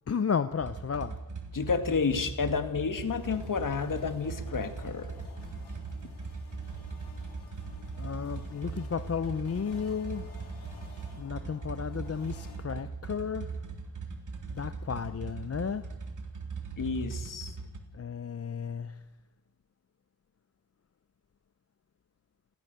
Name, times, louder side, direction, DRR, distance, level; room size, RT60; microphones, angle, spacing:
voice 1, 0.1-1.2 8.0-10.3 11.2-13.6 14.5-15.9 17.9-19.0, left 6 dB, 40° left, 0.7 m, -33 dB
sound 1, 0.6-17.8, right 4 dB, 50° right, 3.7 m, -40 dB
voice 2, 1.5-5.1 16.8-17.5, left 5 dB, 55° left, 2.3 m, -30 dB
sound 2, 3.1-12.6, left 4 dB, 85° left, 5.3 m, -51 dB
29.5 x 17.0 x 6.9 m
cardioid pair, 85°, 38 cm